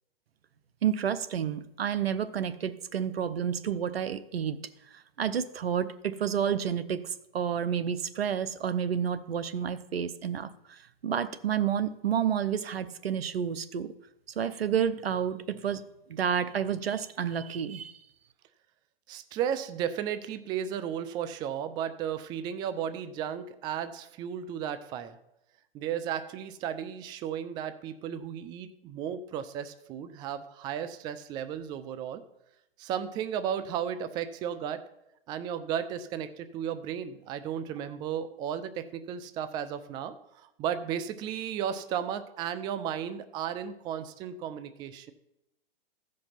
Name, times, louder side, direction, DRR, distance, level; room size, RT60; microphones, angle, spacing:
voice 1, 0.8-4.6 4.9-13.9 14.4-15.8 16.1-18.0, right 8 dB, 85° right, 14 dB, 0.8 m, -30 dB
voice 2, 19.1-25.2 25.7-32.2 32.8-34.8 35.3-45.1, right 9 dB, 15° right, 11 dB, 0.4 m, -34 dB
14.5 x 5.3 x 5.7 m, 0.85 s
hypercardioid pair, 130°, 29 cm